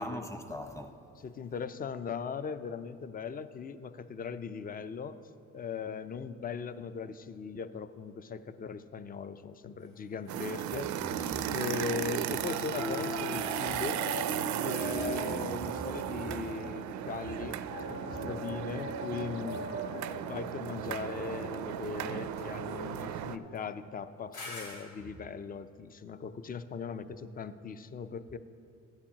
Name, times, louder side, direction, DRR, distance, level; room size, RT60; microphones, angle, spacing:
voice 1, 0.0-1.0 11.0-11.5 14.8-15.1 18.1-18.2 19.5-19.8, equal, 10° left, 0.8 m, -41 dB
voice 2, 1.2-5.2 5.5-10.9 11.5-14.0 14.6-17.6 17.9-19.7 20.3-28.4, left 6 dB, 30° left, 0.4 m, -39 dB
sound 1, 9.8-13.3 22.4-24.9, left 2 dB, 80° left, 2.1 m, -49 dB
sound 2, 10.3-23.4, right 10 dB, 70° right, 0.4 m, -35 dB
sound 3, 12.8-16.9 17.7-22.4, left 2 dB, 55° left, 1.1 m, -43 dB
14.5 x 9.8 x 2.9 m
cardioid pair, 90°, 30 cm